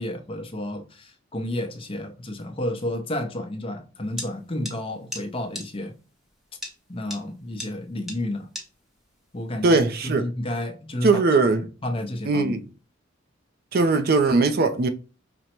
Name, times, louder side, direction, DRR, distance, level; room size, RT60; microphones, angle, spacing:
voice 1, 0.0-5.9 6.9-8.5 9.3-12.6, left 1 dB, 25° left, 0.7 m, -31 dB
sound 1, 4.2-4.3 4.6-4.7 5.1-5.2 5.5-5.6 6.6-6.7 7.1-7.2 7.6-7.7 8.1-8.2 8.5-8.6, left 1 dB, ahead, 0.8 m, -33 dB
voice 2, 9.6-10.2 11.0-11.6 12.3-12.6 13.7-14.9, right 3 dB, 50° right, 0.5 m, -20 dB
5.1 x 2.1 x 4.4 m
head